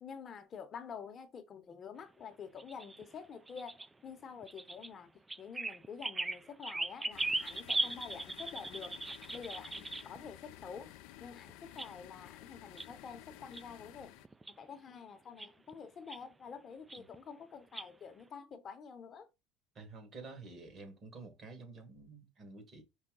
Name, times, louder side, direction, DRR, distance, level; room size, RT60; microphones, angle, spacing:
voice 1, 0.0-9.0 9.3-10.9 11.2-14.2 14.6-19.3, left 6 dB, 45° left, 0.8 m, -48 dB
sound 1, 2.6-3.9 4.4-4.9 5.3-10.2 11.5-11.9 12.2-12.3 12.8-13.2 13.5-13.6 14.2-14.5 15.4-15.7 16.1-16.2 16.9-17.2 17.7-17.9, right 2 dB, 15° right, 0.3 m, -39 dB
sound 2, 7.1-14.3, left 16 dB, 75° left, 0.3 m, -54 dB
voice 2, 19.8-22.8, right 3 dB, 45° right, 1.8 m, -50 dB
5.4 x 2.2 x 3.8 m
supercardioid pair, 85°, 0 cm